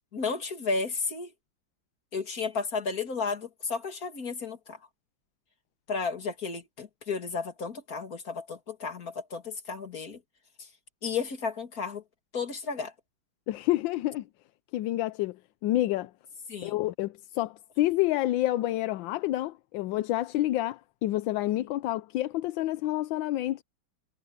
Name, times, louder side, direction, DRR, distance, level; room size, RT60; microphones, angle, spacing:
voice 1, 0.1-1.3 2.1-4.8 5.9-10.2 11.0-12.0 12.3-12.9 16.5-16.8, left 4 dB, 50° left, 2.8 m, -33 dB
voice 2, 13.5-14.2 14.7-15.4 15.6-16.1 16.6-23.6, left 15 dB, 85° left, 1.3 m, -28 dB
omnidirectional pair, 2.0 m